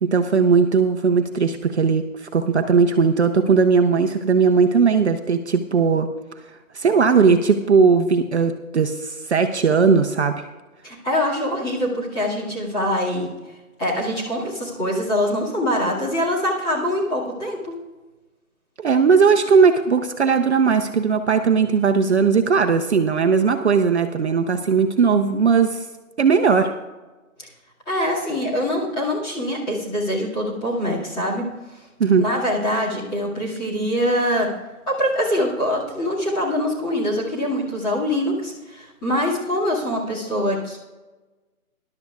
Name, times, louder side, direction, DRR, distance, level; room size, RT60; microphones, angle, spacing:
voice 1, 0.0-6.1 6.7-10.3 18.8-25.8 26.2-26.7 32.0-32.2, right 5 dB, 50° right, 6 dB, 0.8 m, -18 dB
voice 2, 10.8-13.3 13.8-17.8 27.9-31.5 32.2-34.5 34.9-40.8, equal, 10° left, -7 dB, 2.1 m, -24 dB
19.5 x 11.5 x 2.4 m, 1.2 s
hypercardioid pair, 160°, 43 cm